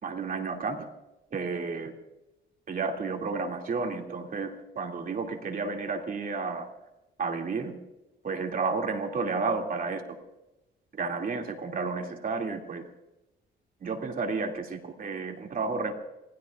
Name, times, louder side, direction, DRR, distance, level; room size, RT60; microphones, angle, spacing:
voice 1, 0.0-0.8 1.3-1.9 2.7-6.7 7.2-7.7 8.2-10.0 11.0-12.8 13.8-15.9, right 4 dB, 45° right, 2 dB, 2.6 m, -31 dB
27.0 x 19.5 x 2.5 m, 0.94 s
cardioid pair, 90°, 20 cm